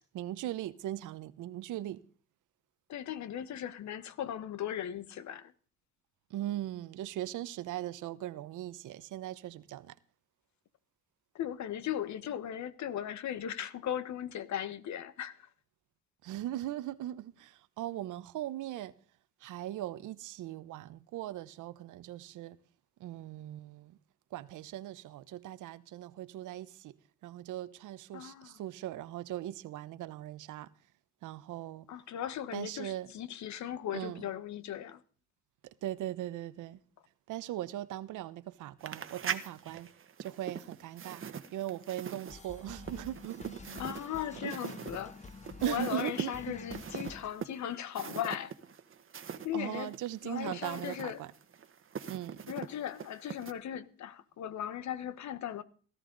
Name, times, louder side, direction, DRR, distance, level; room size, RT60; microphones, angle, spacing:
voice 1, 0.1-2.0 6.3-9.9 16.2-18.9 19.4-22.6 23.0-24.0 24.3-26.9 27.2-30.7 31.2-31.9 32.5-33.1 33.9-34.2 35.8-36.8 37.3-39.9 40.2-41.2 41.5-43.8 44.4-44.6 45.6-46.6 49.5-51.3 52.1-52.4, right 13 dB, 80° right, 0.9 m, -39 dB
voice 2, 2.9-5.5 11.3-15.5 28.1-28.6 31.9-35.0 43.7-45.2 45.6-48.5 49.4-50.0 50.2-51.2 52.5-55.6, left 10 dB, 70° left, 1.1 m, -38 dB
sound 1, 38.8-49.5 49.7-53.5, right 7 dB, 45° right, 1.3 m, -42 dB
sound 2, 42.3-47.3, left 3 dB, 25° left, 1.3 m, -49 dB
17.0 x 13.5 x 3.9 m
cardioid pair, 90°, 30 cm